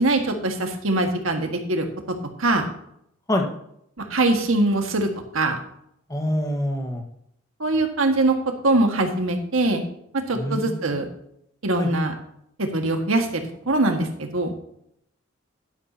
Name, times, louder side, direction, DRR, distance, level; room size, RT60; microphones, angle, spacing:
voice 1, 0.0-1.9 2.4-2.7 4.0-5.1 5.3-5.6 7.6-8.4 8.6-9.8 10.1-11.1 11.6-12.1 12.6-14.5, right 2 dB, 85° right, 4 dB, 1.7 m, -22 dB
voice 2, 6.1-7.0 10.3-11.0 11.8-11.9, left 1 dB, 15° left, 3 dB, 1.4 m, -25 dB
11.5 x 11.0 x 2.8 m, 0.72 s
head